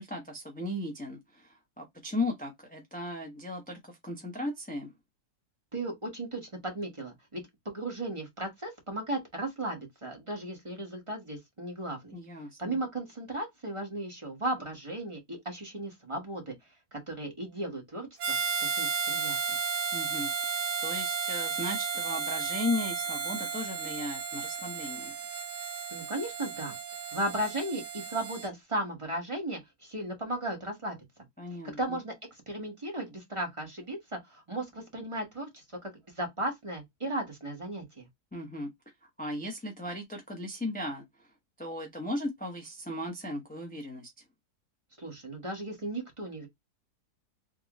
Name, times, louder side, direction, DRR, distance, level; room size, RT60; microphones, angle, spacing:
voice 1, 0.0-4.9 12.1-12.8 19.9-20.6 20.8-25.1 31.4-32.0 38.3-38.7 39.2-41.1 41.6-44.1, left 1 dB, 10° left, 0.4 m, -36 dB
voice 2, 5.7-12.1 12.6-16.5 16.9-18.4 18.7-19.6 25.9-26.8 27.1-31.0 31.8-35.9 36.1-38.1 45.0-46.5, right 1 dB, 20° right, 1.2 m, -36 dB
Harmonica, 18.2-28.5, right 6 dB, 85° right, 1.3 m, -33 dB
3.7 x 2.5 x 3.0 m
omnidirectional pair, 1.7 m